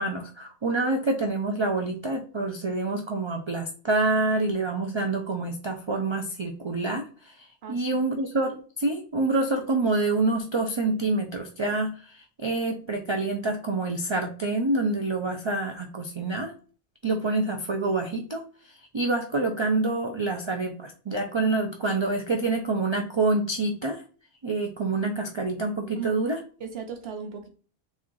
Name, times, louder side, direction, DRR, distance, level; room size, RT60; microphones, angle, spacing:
voice 1, 0.0-16.5 17.0-24.0 24.4-26.4, right 2 dB, 45° right, 3 dB, 0.3 m, -27 dB
voice 2, 7.6-8.0 25.9-26.1 26.6-27.5, right 6 dB, 65° right, 4 dB, 0.9 m, -37 dB
3.6 x 3.1 x 3.8 m, 0.40 s
omnidirectional pair, 1.2 m